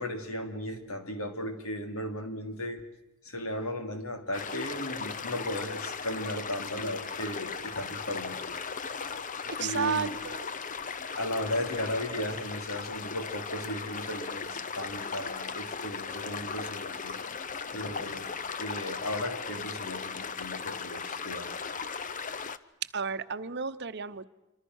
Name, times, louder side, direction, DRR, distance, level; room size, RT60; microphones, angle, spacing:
voice 1, 0.0-2.8 3.2-8.4 9.6-10.2 11.2-21.6, left 1 dB, 75° left, 6 dB, 3.2 m, -36 dB
sound 1, 4.3-22.6, left 5 dB, 35° left, 0.8 m, -37 dB
voice 2, 9.6-10.5 22.9-24.2, right 6 dB, 50° right, 12 dB, 1.0 m, -32 dB
26.5 x 25.0 x 6.4 m, 0.97 s
head